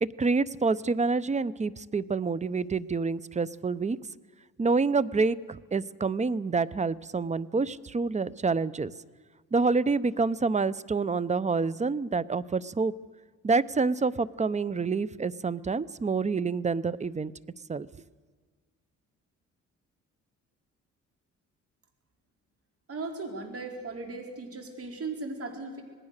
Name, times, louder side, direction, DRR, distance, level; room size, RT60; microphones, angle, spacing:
voice 1, 0.0-4.0 4.6-8.9 9.5-12.9 13.4-17.3 17.7-17.9, right 4 dB, 25° right, 20 dB, 0.7 m, -27 dB
voice 2, 22.9-25.8, right 3 dB, 50° right, 4 dB, 4.4 m, -37 dB
26.5 x 19.0 x 6.6 m, 1.5 s
cardioid pair, 90°, 30 cm